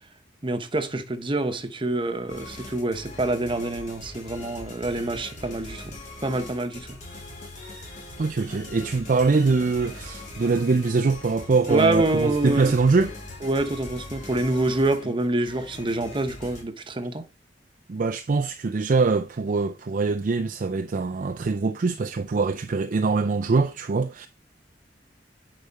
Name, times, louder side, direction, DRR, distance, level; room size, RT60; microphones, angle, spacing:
voice 1, 0.4-5.9 6.2-7.0 11.7-12.8 13.4-17.3, right 2 dB, 30° right, 1.0 m, -26 dB
sound 1, 2.3-16.6, left 2 dB, 45° left, 3.1 m, -41 dB
voice 2, 8.2-13.1 17.9-24.3, right 4 dB, 50° right, 0.4 m, -23 dB
9.8 x 5.0 x 4.2 m
head